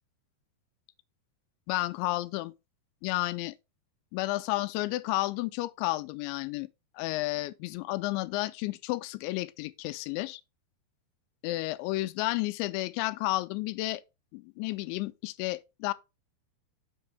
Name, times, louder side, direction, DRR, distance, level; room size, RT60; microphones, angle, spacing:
voice 1, 1.7-2.5 3.0-3.5 4.1-6.7 7.0-10.4 11.4-14.0 14.3-15.9, left 19 dB, 85° left, 2.9 m, -32 dB
7.2 x 6.8 x 3.4 m
omnidirectional pair, 5.2 m